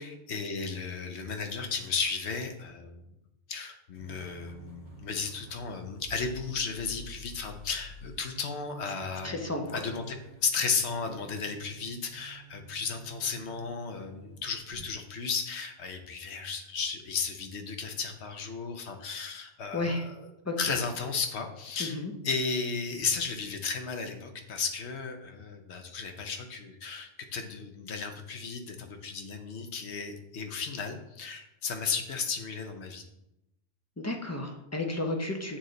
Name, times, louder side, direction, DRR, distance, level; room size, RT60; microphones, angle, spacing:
voice 1, 0.0-3.0 3.5-10.1 10.4-20.0 20.6-22.0 22.2-33.0, left 5 dB, 75° left, 6 dB, 1.1 m, -34 dB
sound 1, 3.9-14.8, right 3 dB, 55° left, 2.6 m, -50 dB
voice 2, 9.2-9.8 19.7-20.1 20.4-20.8 21.8-22.1 34.0-35.6, left 2 dB, 20° left, 2 dB, 0.5 m, -32 dB
8.8 x 3.2 x 3.8 m, 0.88 s
omnidirectional pair, 1.1 m